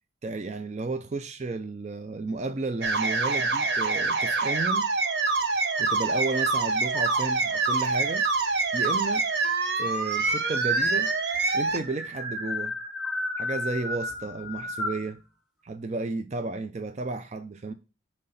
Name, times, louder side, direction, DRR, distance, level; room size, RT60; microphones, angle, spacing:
voice 1, 0.2-4.9 5.8-8.3 8.7-9.3 9.8-11.1 11.5-12.8 13.4-15.2 15.6-17.7, right 3 dB, 35° right, 0.4 m, -32 dB
sound 1, 2.8-11.8, right 3 dB, 55° right, 0.8 m, -25 dB
sound 2, 4.9-6.4 6.9-7.6 8.6-8.7 8.9-9.0 9.3-15.1, left 2 dB, ahead, 1.5 m, -35 dB
7.5 x 3.3 x 5.5 m
head